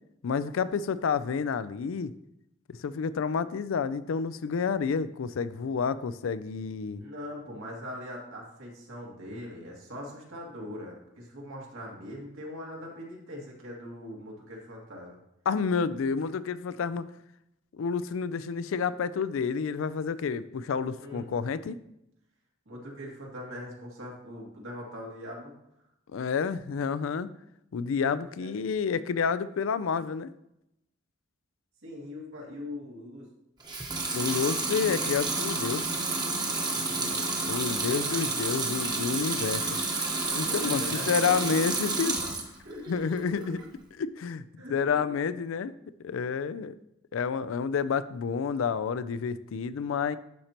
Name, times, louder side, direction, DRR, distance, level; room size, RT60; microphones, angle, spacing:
voice 1, 0.2-2.1 2.7-7.0 15.5-17.1 17.8-21.8 26.1-27.3 27.7-30.3 34.1-35.8 37.4-39.8 40.4-42.2 42.9-43.6 44.0-44.4 44.7-45.7 46.0-46.7 47.1-50.2, left 6 dB, 80° left, 16 dB, 0.4 m, -29 dB
voice 2, 7.0-15.2 21.0-21.3 22.7-25.5 28.4-28.6 31.8-33.3 36.7-38.1 40.4-42.0 42.6-43.6 44.6-45.1, left 1 dB, 80° right, -2 dB, 2.1 m, -42 dB
Water tap faucet / Sink (filling or washing) / Liquid, 33.6-42.5 42.9-43.7, right 3 dB, 20° right, 0.9 m, -30 dB
11.5 x 4.4 x 2.9 m, 0.83 s
head